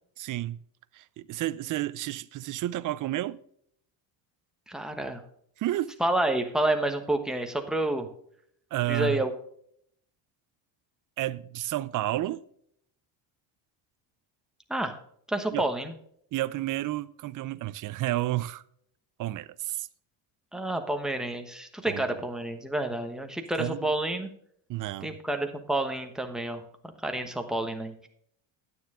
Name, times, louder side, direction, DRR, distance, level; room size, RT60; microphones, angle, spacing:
voice 1, 0.2-0.6 0.9-3.4 5.6-5.9 8.7-9.3 11.2-12.4 15.5-15.7 16.3-18.6 19.2-19.9 21.9-22.2 23.6-23.9 24.7-25.2, right 15 dB, 40° right, 0.5 m, -31 dB
voice 2, 4.7-5.2 6.0-8.1 8.9-9.3 14.7-15.0 15.3-15.9 20.5-24.3 25.0-26.6 27.0-28.1, right 1 dB, ahead, 1.1 m, -29 dB
9.5 x 9.3 x 3.7 m
cardioid pair, 130°, 49 cm